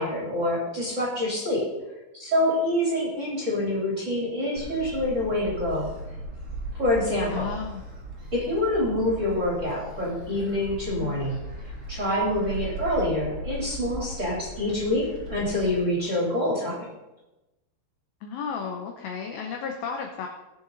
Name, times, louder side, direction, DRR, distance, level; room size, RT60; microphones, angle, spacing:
voice 1, 0.0-1.7 2.1-5.9 6.7-7.5 8.3-11.4 11.9-16.8, left 1 dB, 20° right, -5 dB, 2.9 m, -26 dB
Gull seagull, 4.6-15.8, equal, 70° right, 0.7 m, -38 dB
voice 2, 7.3-7.8 11.0-11.4 18.2-20.3, left 6 dB, 80° left, 3 dB, 2.2 m, -33 dB
20.0 x 6.9 x 4.0 m, 1.0 s
omnidirectional pair, 5.6 m